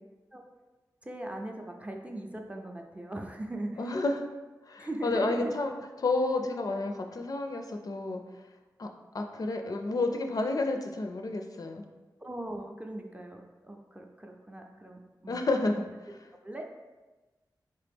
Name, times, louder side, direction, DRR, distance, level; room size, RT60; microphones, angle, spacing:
voice 1, 1.0-3.8 4.8-5.5 12.2-15.5 16.4-16.6, right 1 dB, 15° right, 2 dB, 0.5 m, -39 dB
voice 2, 3.8-4.3 4.6-8.9 9.1-11.9 15.3-16.3, left 2 dB, 55° left, 4 dB, 0.4 m, -31 dB
3.3 x 2.9 x 3.4 m, 1.2 s
cardioid pair, 60°, 8 cm